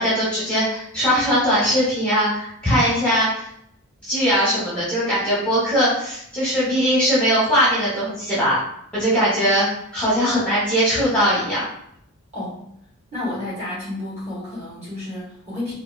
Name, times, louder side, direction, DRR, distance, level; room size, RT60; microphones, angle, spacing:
voice 1, 0.0-3.5 4.0-8.6 8.9-9.7 9.9-11.7, equal, 5° left, -10 dB, 0.9 m, -20 dB
voice 2, 13.1-15.7, left 1 dB, 30° right, -8 dB, 1.4 m, -31 dB
3.7 x 2.5 x 2.3 m, 0.72 s
head